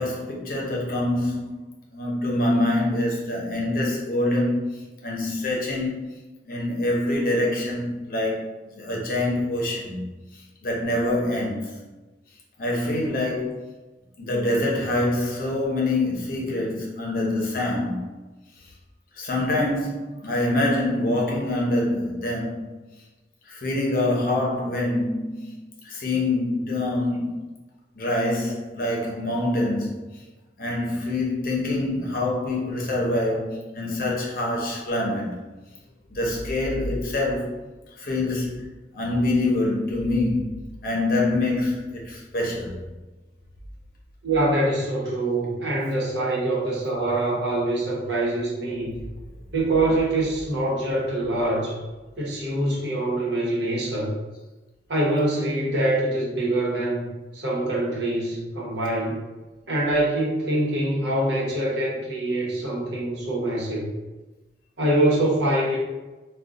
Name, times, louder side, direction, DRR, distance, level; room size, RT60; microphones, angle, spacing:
voice 1, 0.0-1.6 1.9-6.0 6.5-10.1 10.6-11.7 12.6-13.6 14.2-18.1 19.2-22.7 23.5-25.6 25.8-27.4 28.0-30.1 30.6-35.4 36.1-37.5 38.0-38.6 38.9-40.5 40.8-42.8, left 1 dB, 50° left, -2 dB, 0.7 m, -25 dB
voice 2, 44.2-49.0 49.5-51.8 52.2-54.1 54.9-57.1 57.3-59.2 59.7-63.9 64.8-65.8, right 1 dB, 80° right, -5 dB, 1.0 m, -24 dB
2.4 x 2.3 x 3.6 m, 1.2 s
head